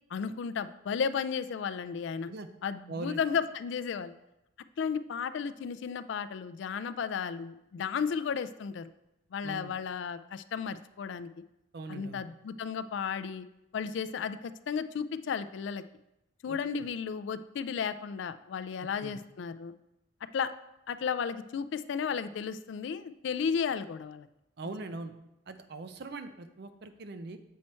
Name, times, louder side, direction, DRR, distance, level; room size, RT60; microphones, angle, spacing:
voice 1, 0.1-2.3 2.6-4.1 4.8-8.9 9.3-11.3 11.9-13.5 13.7-15.8 16.4-19.7 20.3-20.5 20.9-24.3, left 6 dB, 65° left, 13 dB, 0.3 m, -34 dB
voice 2, 2.9-3.2 9.4-9.7 11.7-12.2 16.5-16.6 19.0-19.2 24.6-25.1 25.5-27.4, right 3 dB, 55° right, 9 dB, 0.5 m, -41 dB
7.4 x 4.4 x 4.3 m, 0.88 s
head